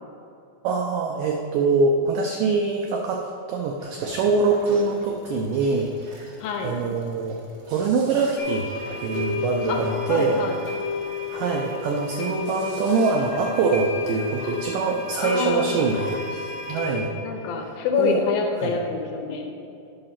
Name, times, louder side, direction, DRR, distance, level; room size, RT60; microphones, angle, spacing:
voice 1, 0.6-6.4 6.6-7.4 7.7-8.7 9.0-10.4 11.3-17.1 18.0-18.2 18.6-18.8, right 4 dB, 85° right, 1 dB, 1.9 m, -24 dB
sound 1, 3.8-16.7, right 1 dB, 50° right, 1.1 m, -47 dB
voice 2, 6.4-6.8 9.7-9.8 10.1-10.6 15.2-15.7 17.2-19.5, left 5 dB, 75° left, 2 dB, 2.4 m, -26 dB
sound 2, 8.4-17.0, left 5 dB, 50° left, 3.5 m, -32 dB
10.5 x 4.9 x 5.7 m, 2.6 s
omnidirectional pair, 4.5 m